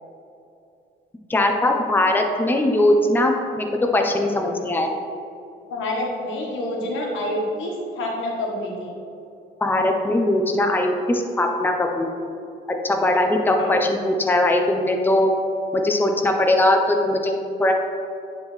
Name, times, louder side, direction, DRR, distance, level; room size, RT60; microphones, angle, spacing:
voice 1, 1.3-3.7 3.9-4.9 9.6-12.3 12.8-15.3 15.7-17.7, left 1 dB, 10° left, 2 dB, 0.6 m, -20 dB
voice 2, 5.7-8.9 13.6-13.7, left 1 dB, 80° left, -2 dB, 1.4 m, -27 dB
9.6 x 3.7 x 3.2 m, 2.6 s
cardioid pair, 90°, 20 cm